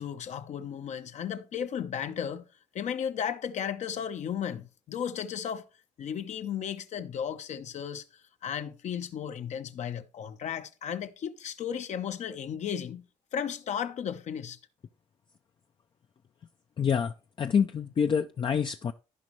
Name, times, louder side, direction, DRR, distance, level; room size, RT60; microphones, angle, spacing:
voice 1, 0.0-2.4 2.7-5.6 6.0-13.1 13.3-14.6, left 8 dB, 70° left, 0.8 m, -35 dB
voice 2, 16.8-18.9, left 7 dB, 40° left, 0.4 m, -27 dB
15.0 x 5.2 x 3.1 m
cardioid pair, 80°, 13 cm